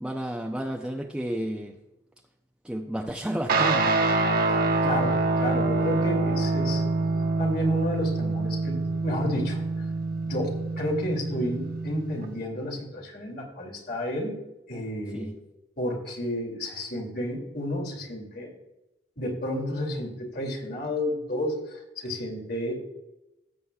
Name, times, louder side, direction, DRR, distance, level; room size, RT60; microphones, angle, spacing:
voice 1, 0.0-1.8 2.6-4.0 15.1-15.3, right 1 dB, 5° right, 0 dB, 0.6 m, -31 dB
Guitar, 3.5-12.3, right 3 dB, 55° right, 1.1 m, -26 dB
voice 2, 4.5-6.8 7.4-9.9 10.2-14.4 14.7-15.3 15.8-18.5 19.2-22.9, left 1 dB, 55° left, 1 dB, 2.6 m, -31 dB
17.0 x 7.9 x 2.4 m, 0.97 s
head